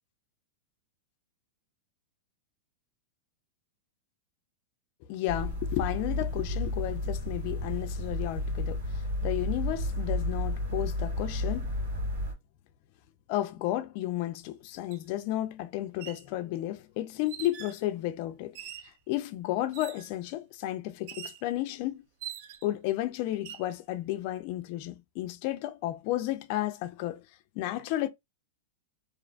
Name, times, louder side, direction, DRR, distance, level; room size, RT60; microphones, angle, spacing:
voice 1, 5.1-11.7 13.3-18.6 19.1-22.0 22.6-27.2 27.6-28.1, left 14 dB, 50° left, 0.3 m, -33 dB
sound 1, 5.3-12.3, left 1 dB, 85° right, 1.4 m, -32 dB
sound 2, 14.9-15.0 15.8-16.3 17.3-17.8 18.5-19.0 19.7-20.2 21.1-21.4 22.2-22.8 23.3-23.7, right 10 dB, 55° right, 0.3 m, -43 dB
2.4 x 2.2 x 2.4 m
hypercardioid pair, 135°, 0 cm